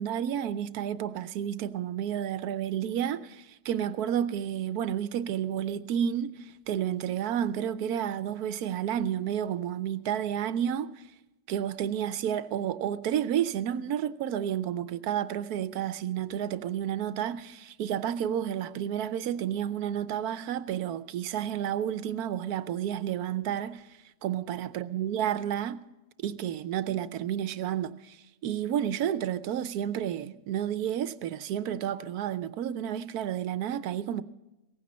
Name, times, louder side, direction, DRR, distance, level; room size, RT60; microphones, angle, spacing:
voice 1, 0.0-10.9 11.5-23.8 24.2-25.8 26.2-28.2 28.4-34.2, right 10 dB, 90° right, 1.2 m, -31 dB
17.5 x 15.5 x 4.2 m
omnidirectional pair, 1.6 m